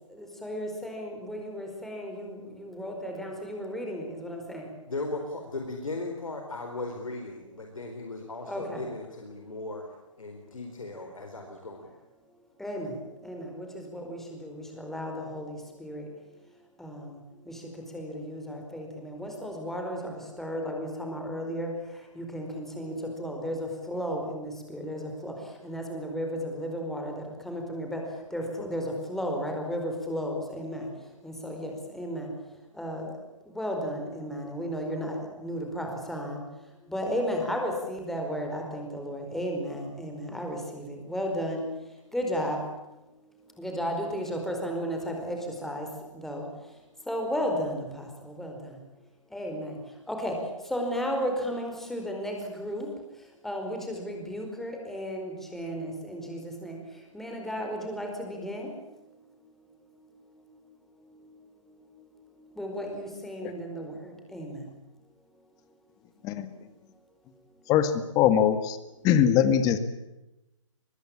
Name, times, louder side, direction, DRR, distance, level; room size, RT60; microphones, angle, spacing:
voice 1, 0.1-4.7 8.5-8.8 12.6-16.1 16.8-30.9 31.2-32.3 32.7-33.2 33.4-36.4 36.8-41.7 42.1-42.9 43.2-43.3 43.6-46.8 47.0-48.8 49.3-59.0 59.4-59.5 59.9-60.6 60.9-61.4 61.7-64.7, equal, ahead, 2 dB, 4.8 m, -34 dB
voice 2, 4.9-9.8 10.2-11.9, left 2 dB, 85° left, 3 dB, 4.3 m, -37 dB
voice 3, 67.7-68.8 69.0-69.8, left 9 dB, 20° left, 11 dB, 1.9 m, -22 dB
23.0 x 21.0 x 8.7 m, 0.96 s
hypercardioid pair, 140°, 17 cm